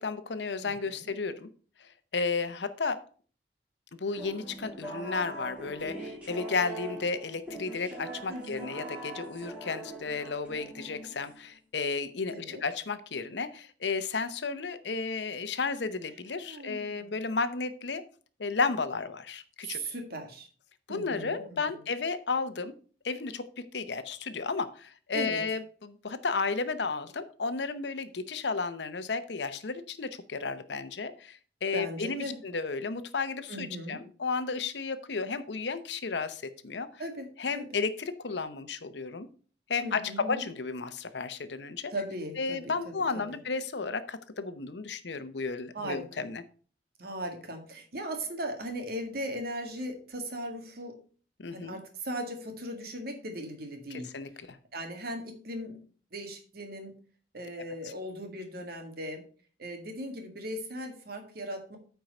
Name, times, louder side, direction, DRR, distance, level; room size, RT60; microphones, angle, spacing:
voice 1, 0.0-1.5 2.1-3.0 3.9-18.0 18.4-19.8 20.9-22.7 23.0-23.4 23.7-36.9 37.4-39.3 39.7-41.9 42.4-46.4 51.4-51.8 53.9-54.6, left 4 dB, 75° left, 12 dB, 0.8 m, -33 dB
voice 2, 0.6-1.1 8.3-8.8 12.3-12.6 16.4-17.2 19.6-20.5 20.9-21.8 25.1-25.4 31.7-32.4 33.5-34.0 37.0-37.3 37.6-37.7 39.8-40.5 41.9-43.4 45.7-46.3 47.0-51.0 51.5-55.8 56.1-56.9 57.3-59.2 59.6-61.8, equal, 60° right, 4 dB, 1.8 m, -38 dB
sound 1, 4.1-11.5, right 1 dB, 10° right, 2.8 m, -42 dB
9.1 x 4.6 x 5.3 m, 0.41 s
head